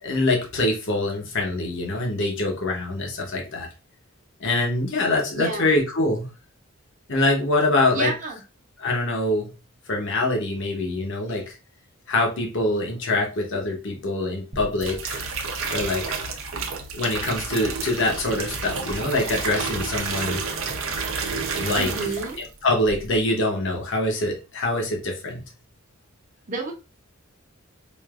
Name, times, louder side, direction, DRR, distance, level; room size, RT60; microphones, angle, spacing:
voice 1, 0.0-3.7 4.4-6.3 7.1-8.1 8.8-9.5 9.9-11.4 12.1-15.2 15.7-16.0 16.9-20.4 21.6-21.9 22.6-25.4, left 2 dB, 60° left, 1 dB, 1.0 m, -24 dB
voice 2, 5.3-5.7 7.9-8.4 21.8-22.4 26.5-26.7, right 3 dB, 40° right, 1 dB, 1.0 m, -29 dB
sound 1, 14.5-22.5 22.8-23.2, right 4 dB, 70° right, 0.8 m, -30 dB
5.2 x 2.6 x 2.4 m, 0.31 s
head